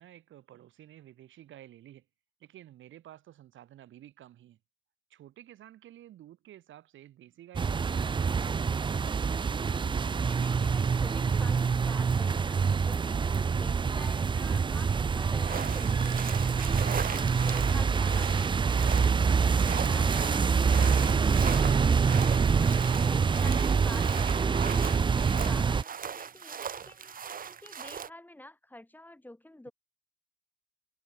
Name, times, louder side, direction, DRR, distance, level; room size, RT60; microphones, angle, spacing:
voice 1, 0.0-2.1 2.4-4.6 5.1-9.2, right 12 dB, 75° right, 2.2 m, -52 dB
sound 1, 7.5-25.8, right 5 dB, 25° right, 0.4 m, -26 dB
voice 2, 10.1-16.7 17.1-22.2 22.6-29.7, left 1 dB, 10° left, 3.0 m, -49 dB
sound 2, 15.4-28.1, right 7 dB, 45° right, 2.1 m, -39 dB
cardioid pair, 90°, 20 cm